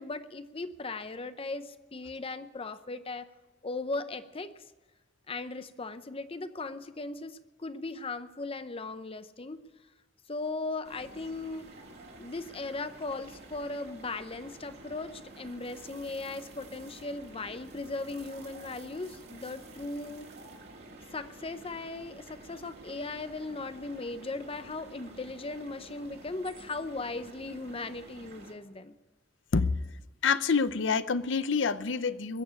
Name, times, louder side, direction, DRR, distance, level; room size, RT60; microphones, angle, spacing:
voice 1, 0.0-3.3 3.6-4.6 5.3-9.6 10.3-11.8 12.2-20.3 21.1-28.9, left 3 dB, 30° left, 12 dB, 0.7 m, -38 dB
sound 1, 10.8-28.5, right 2 dB, 60° right, 3.1 m, -50 dB
voice 2, 30.2-32.4, left 5 dB, 80° left, 15 dB, 0.7 m, -27 dB
21.5 x 7.2 x 8.5 m, 1.2 s
head